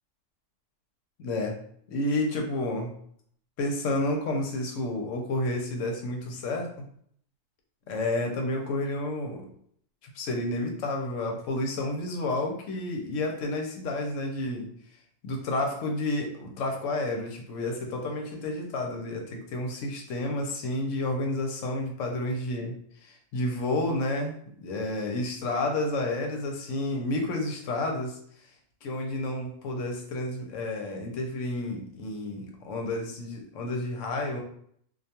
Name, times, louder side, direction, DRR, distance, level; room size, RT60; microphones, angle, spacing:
voice 1, 1.2-1.6 1.9-2.9 3.6-6.9 7.9-9.5 10.1-14.7 15.2-22.7 23.0-24.4 24.6-28.2 28.8-34.4, left 2 dB, 80° left, 2 dB, 1.0 m, -30 dB
2.4 x 2.3 x 2.7 m, 0.64 s
omnidirectional pair, 1.3 m